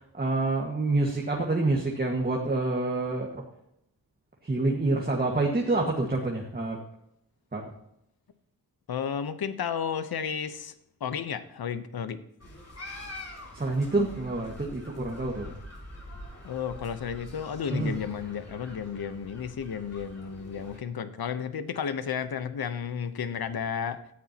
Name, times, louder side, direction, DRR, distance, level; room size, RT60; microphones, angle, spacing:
voice 1, 0.1-3.3 4.4-6.8 7.5-7.7 13.5-15.5 17.7-17.9, right 2 dB, 25° right, -1 dB, 1.9 m, -27 dB
voice 2, 8.9-10.7 11.0-12.2 16.4-24.0, left 7 dB, 70° left, 11 dB, 1.0 m, -32 dB
sound 1, 12.4-20.8, left 1 dB, 40° left, 5.8 m, -45 dB
17.5 x 14.0 x 3.0 m, 0.78 s
wide cardioid pair, 120°, 38 cm